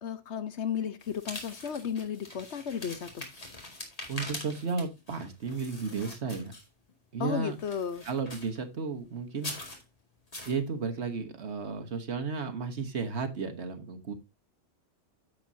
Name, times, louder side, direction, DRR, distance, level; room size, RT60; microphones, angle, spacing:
voice 1, 0.0-3.3 7.2-8.0, left 7 dB, 70° left, 1.2 m, -34 dB
sound 1, 1.0-6.9 7.4-8.6 9.3-9.8 10.3-10.6, left 1 dB, 30° left, 2.3 m, -43 dB
voice 2, 4.1-6.5 7.1-7.6 8.0-9.5 10.5-14.1, right 4 dB, 70° right, 1.5 m, -33 dB
9.5 x 7.6 x 2.7 m
omnidirectional pair, 1.2 m